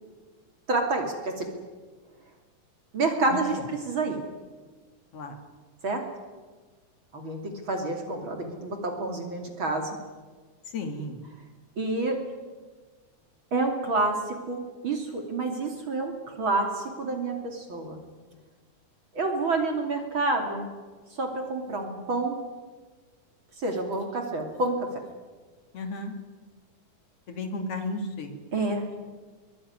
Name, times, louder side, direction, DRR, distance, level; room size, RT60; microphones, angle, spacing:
voice 1, 0.7-1.5 2.9-3.6 3.9-4.2 5.8-6.0 7.1-9.9 11.8-12.2 13.5-18.0 19.1-20.7 21.2-22.3 23.6-24.9 28.5-28.8, right 3 dB, 40° right, 3 dB, 3.2 m, -28 dB
voice 2, 10.7-11.2 25.7-26.1 27.3-28.3, left 2 dB, 50° left, 6 dB, 3.4 m, -33 dB
23.0 x 20.0 x 9.6 m, 1.4 s
omnidirectional pair, 3.5 m